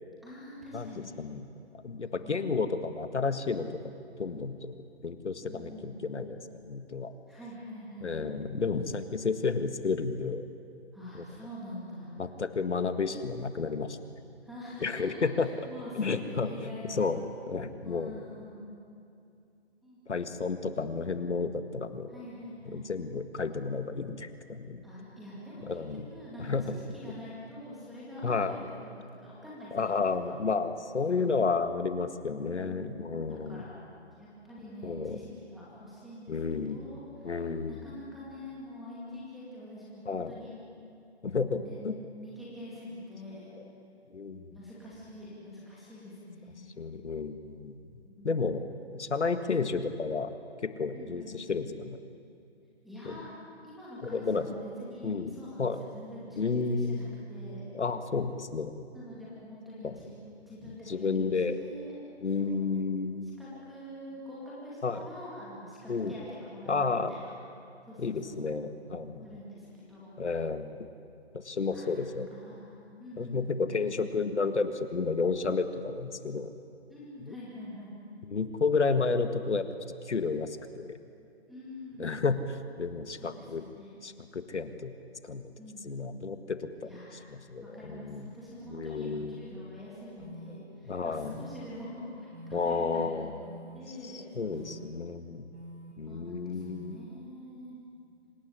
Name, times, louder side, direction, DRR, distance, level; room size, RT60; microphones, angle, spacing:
voice 1, 0.2-1.1 2.0-2.6 5.4-6.0 7.3-8.2 10.9-12.2 14.4-17.1 17.8-18.7 19.8-20.0 22.1-22.9 24.8-30.0 30.2-30.4 31.1-31.3 32.3-33.8 34.2-35.3 35.5-40.5 41.6-41.8 42.2-43.5 44.5-46.7 48.0-48.7 50.9-51.6 52.8-53.3 53.6-57.7 58.9-61.9 62.4-62.7 63.2-67.3 67.8-68.5 69.2-70.2 71.7-71.9 72.3-73.7 76.9-77.9 81.5-82.2 83.1-84.0 85.6-86.3 86.8-87.2 87.6-93.5 93.7-94.8 96.0-97.8, left 1 dB, ahead, -8 dB, 2.4 m, -45 dB
voice 2, 1.8-3.9 4.2-6.4 6.7-7.1 8.0-10.5 11.1-11.2 12.2-14.0 14.8-15.7 16.0-17.2 17.5-18.1 20.1-22.1 22.7-24.8 25.7-26.1 26.4-26.6 28.2-28.5 29.7-33.6 34.8-35.2 36.3-36.8 37.2-37.8 40.1-40.3 41.2-41.9 44.1-44.5 46.8-47.8 48.2-48.6 48.9-50.3 50.6-52.0 53.1-53.2 54.0-54.5 55.0-55.3 55.6-55.8 56.4-57.0 57.7-58.7 59.8-60.0 60.9-61.6 62.2-63.3 64.8-65.0 65.9-66.1 66.7-67.1 68.0-69.3 70.2-70.8 71.3-72.3 73.2-76.5 77.2-77.3 78.3-79.7 80.1-81.0 82.0-83.6 84.0-84.9 85.2-85.5 85.8-86.9 87.3-88.2 88.7-89.3 90.9-91.4 92.5-93.3 94.0-95.4 96.0-97.0, left 4 dB, 90° left, 9 dB, 1.9 m, -31 dB
sound 1, 89.5-89.6 90.2-90.6 91.2-91.7 92.3-92.7 93.4-93.8 94.4-94.9 95.5-95.9 96.6-97.0, equal, 85° right, 7.4 m, -46 dB
26.0 x 16.5 x 9.9 m, 2.5 s
hypercardioid pair, 175°, 34 cm